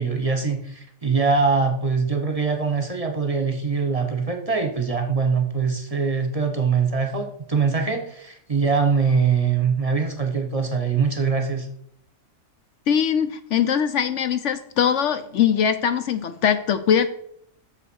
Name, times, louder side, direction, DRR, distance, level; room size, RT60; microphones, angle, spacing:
voice 1, 0.0-11.7, right 5 dB, 30° right, 5 dB, 1.1 m, -23 dB
voice 2, 12.9-17.1, left 8 dB, 65° left, 11 dB, 1.0 m, -21 dB
6.8 x 6.7 x 6.2 m, 0.68 s
omnidirectional pair, 1.4 m